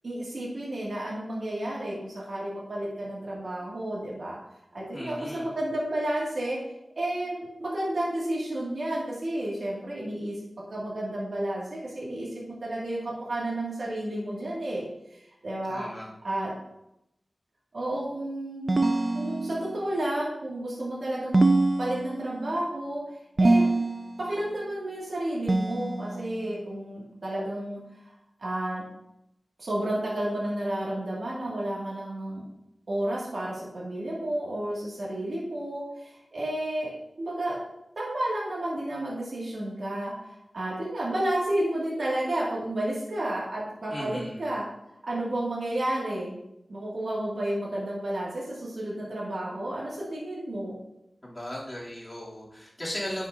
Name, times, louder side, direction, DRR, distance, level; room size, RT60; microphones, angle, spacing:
voice 1, 0.0-4.4 4.7-6.6 7.0-10.4 10.7-14.9 15.1-15.9 16.2-16.5 17.7-18.9 19.1-21.4 21.8-23.0 23.4-23.7 24.2-27.8 28.4-28.8 29.6-32.4 32.9-36.9 37.2-37.6 38.0-44.6 45.0-46.4 46.7-50.7, right 1 dB, 70° right, -6 dB, 2.3 m, -31 dB
voice 2, 4.9-5.5 15.7-16.1 43.9-44.4 51.2-53.3, equal, 25° left, -7 dB, 3.0 m, -36 dB
sound 1, 18.7-19.9 21.3-22.5 23.4-24.3 25.5-26.4, right 2 dB, 40° right, 0.4 m, -24 dB
10.0 x 6.2 x 2.7 m, 0.83 s
wide cardioid pair, 85°, 0 cm